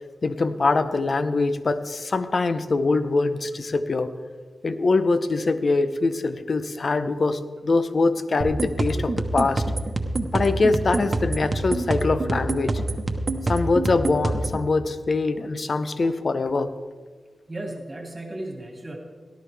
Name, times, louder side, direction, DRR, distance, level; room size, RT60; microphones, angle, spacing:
voice 1, 0.2-4.1 4.6-9.6 10.3-12.8 13.5-16.8, left 3 dB, 55° left, 11 dB, 0.7 m, -23 dB
sound 1, 8.4-14.6, right 2 dB, 45° right, 1.1 m, -26 dB
voice 2, 17.5-19.0, right 1 dB, 25° right, 1 dB, 2.3 m, -35 dB
18.0 x 12.0 x 3.4 m, 1.4 s
cardioid pair, 70°, 0 cm